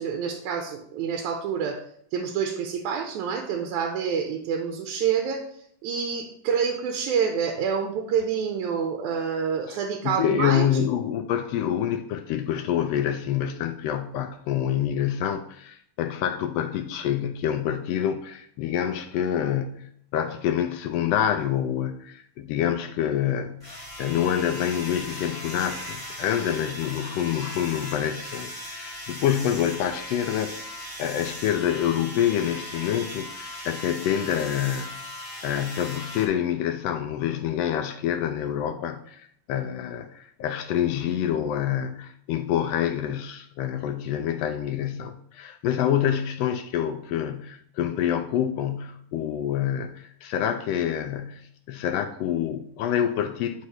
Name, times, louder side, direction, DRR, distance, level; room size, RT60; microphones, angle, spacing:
voice 1, 0.0-1.8 2.1-5.5 5.8-10.7, right 7 dB, 90° right, 3 dB, 2.1 m, -27 dB
voice 2, 10.0-23.7 24.0-34.9 35.4-53.7, left 10 dB, 85° left, 7 dB, 1.4 m, -27 dB
sound 1, 23.6-36.3, equal, ahead, 2.1 m, -38 dB
10.0 x 4.9 x 3.0 m, 0.66 s
omnidirectional pair, 3.4 m